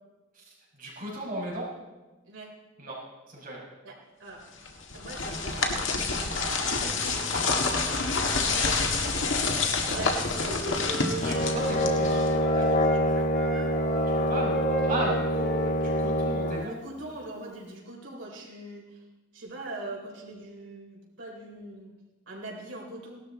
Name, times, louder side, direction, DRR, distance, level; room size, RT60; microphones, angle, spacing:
voice 1, 0.3-1.7 2.8-3.0 3.3-3.6 9.4-10.0 11.1-12.8 14.1-16.8, right 1 dB, 50° right, -4 dB, 5.6 m, -36 dB
voice 2, 3.8-4.4 4.9-8.9 9.9-11.1 11.6-13.7 16.6-19.0 19.3-21.9 22.3-23.2, right 1 dB, 80° right, -2 dB, 4.0 m, -42 dB
sound 1, 4.6-12.5, left 4 dB, 85° left, 1.6 m, -28 dB
Wind instrument woodwind instrument, 10.1-13.0 13.3-16.7, right 2 dB, ahead, 3.8 m, -36 dB
Brass instrument, 11.2-16.7, left 1 dB, 40° left, 0.7 m, -26 dB
17.5 x 12.5 x 4.2 m, 1.2 s
head